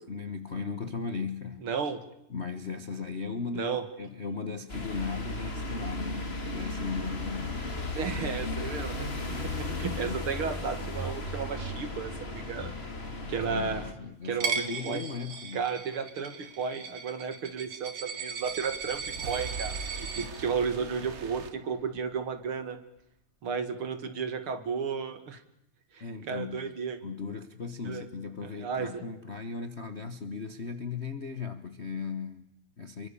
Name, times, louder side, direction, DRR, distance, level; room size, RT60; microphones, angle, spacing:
voice 1, 0.1-1.6 2.3-7.5 10.1-10.3 13.4-15.6 26.0-26.6 27.0-33.1, left 5 dB, 80° left, 9 dB, 0.6 m, -37 dB
voice 2, 1.6-2.0 3.5-3.8 8.0-9.1 9.4-12.7 13.3-13.8 14.2-15.0 15.5-22.8 23.4-25.4 25.9-27.0 27.9-28.0 28.4-29.0, right 6 dB, 50° right, 9 dB, 2.6 m, -33 dB
sound 1, 4.7-13.9, left 2 dB, 20° left, 2.5 m, -35 dB
Coin (dropping), 14.4-20.3, right 5 dB, 65° right, 3.4 m, -37 dB
sound 2, 18.5-22.3, right 4 dB, 85° right, 0.6 m, -41 dB
28.5 x 23.0 x 7.0 m, 0.81 s
omnidirectional pair, 3.3 m